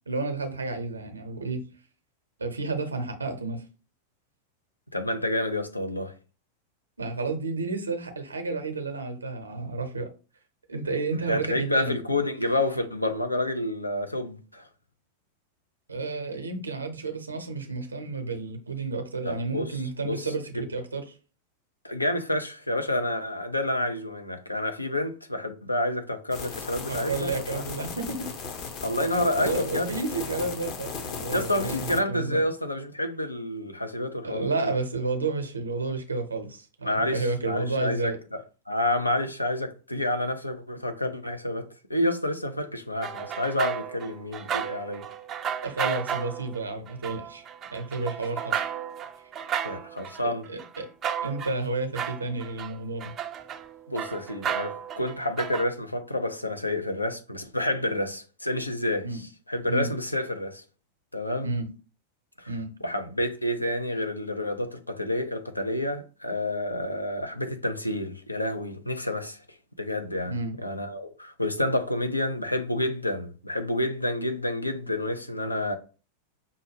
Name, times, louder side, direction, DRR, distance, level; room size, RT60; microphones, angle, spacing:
voice 1, 0.1-1.6 2.4-3.6 7.0-10.1 10.7-11.9 15.9-21.0 26.9-28.3 29.4-32.5 34.2-38.2 45.6-47.5 47.7-48.6 50.5-50.9 51.2-53.1 59.0-59.2 59.7-59.9 61.4-61.7 62.5-62.7 70.2-70.6, right 3 dB, 75° right, 0.7 m, -31 dB
voice 2, 4.9-6.1 11.3-14.7 19.2-19.7 20.0-20.3 20.5-20.6 21.8-27.6 28.8-29.9 31.3-34.7 36.8-38.4 38.7-45.1 49.6-50.4 53.9-60.6 61.1-61.5 62.4-62.5 62.8-69.4 69.8-70.3 70.6-75.7, left 1 dB, 85° left, 0.5 m, -29 dB
sound 1, 26.3-32.0, left 5 dB, 40° left, 0.7 m, -36 dB
sound 2, 43.0-51.7 51.9-55.6, right 8 dB, 30° right, 0.4 m, -33 dB
5.4 x 2.2 x 3.2 m
figure-of-eight pair, 90°, 0 cm